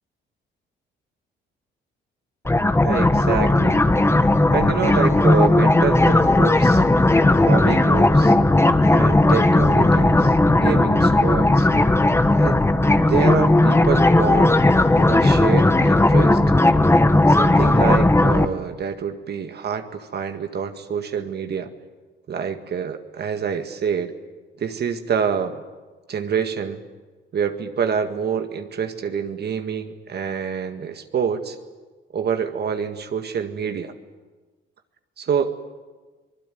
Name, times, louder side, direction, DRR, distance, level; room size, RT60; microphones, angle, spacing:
sound 1, 2.4-18.5, left 2 dB, 15° left, 1.4 m, -16 dB
voice 1, 2.8-3.8 4.5-6.8 7.5-8.3 8.9-11.7 12.4-12.6 13.1-14.6 15.0-16.4 17.3-21.7 22.3-24.2 24.6-25.6 26.1-26.8 27.3-31.6 32.1-33.9 35.2-35.6, right 7 dB, 55° right, 7 dB, 1.8 m, -26 dB
25.0 x 21.0 x 9.3 m, 1.3 s
cardioid pair, 90°, 20 cm